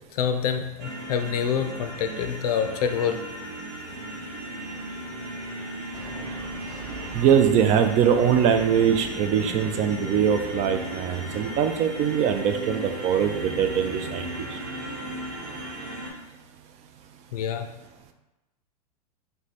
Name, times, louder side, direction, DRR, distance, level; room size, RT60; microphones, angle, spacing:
voice 1, 0.1-3.2 17.3-17.7, left 7 dB, 70° left, 7 dB, 0.5 m, -26 dB
sound 1, 0.8-16.1, right 1 dB, 75° right, 1.0 m, -36 dB
sound 2, 5.9-11.1, right 1 dB, 5° left, 1.2 m, -43 dB
voice 2, 7.1-14.6, right 8 dB, 35° right, 7 dB, 0.4 m, -22 dB
3.2 x 2.2 x 4.0 m, 1.0 s
hypercardioid pair, 105°, 20 cm